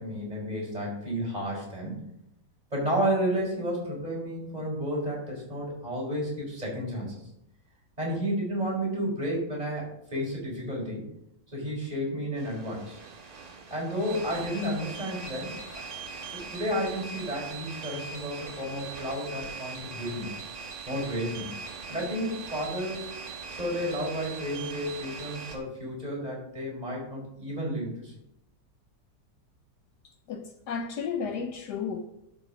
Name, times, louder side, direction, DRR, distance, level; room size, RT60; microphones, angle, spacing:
voice 1, 0.0-2.0 2.7-7.2 8.0-11.1 11.5-13.0 13.7-15.9 16.3-20.4 20.9-21.5 21.9-23.1 23.5-28.1, equal, 20° right, 4.6 m, -32 dB
sound 1, 12.4-25.6, right 5 dB, 55° right, 2.4 m, -41 dB
voice 2, 30.3-32.0, left 6 dB, 70° left, 1.2 m, -33 dB
11.5 x 5.8 x 5.8 m
omnidirectional pair, 1.9 m